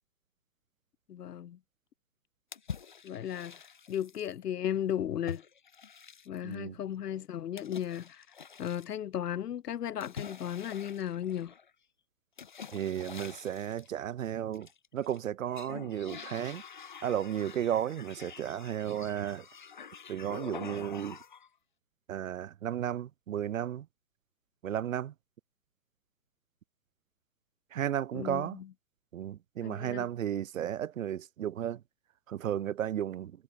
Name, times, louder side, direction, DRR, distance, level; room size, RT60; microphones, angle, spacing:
voice 1, 1.1-1.6 3.0-3.6 3.9-5.4 6.3-8.3 8.6-11.5 28.1-28.7 29.6-30.1, left 10 dB, 65° left, 1.0 m, -35 dB
sound 1, 2.5-4.3 5.3-6.6 7.6-8.9 10.0-11.7 12.4-13.9 14.5-15.2 15.5-21.5, left 7 dB, 30° left, 0.5 m, -46 dB
voice 2, 6.4-6.8 12.7-14.7 14.9-16.6 17.0-19.4 20.1-21.2 22.1-23.9 24.6-25.1 27.7-28.6 29.1-31.8 32.3-33.3, right 10 dB, 50° right, 0.9 m, -34 dB
hypercardioid pair, 155°, 50 cm